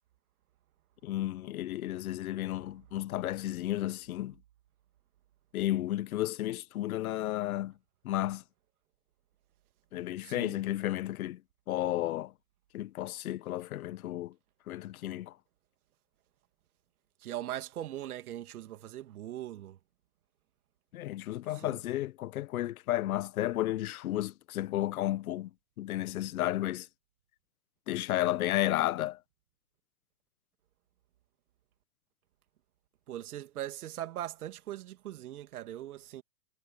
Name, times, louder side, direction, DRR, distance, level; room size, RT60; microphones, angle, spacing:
voice 1, 1.0-4.3 5.5-7.7 8.0-8.4 9.9-11.4 11.7-12.3 12.7-14.3 14.7-15.3 20.9-25.5 25.8-26.9 27.9-29.2, left 14 dB, 60° left, 1.4 m, -32 dB
voice 2, 10.2-10.6 17.2-19.8 21.5-21.8 33.1-36.2, right 13 dB, 65° right, 2.8 m, -40 dB
hypercardioid pair, 120°, 48 cm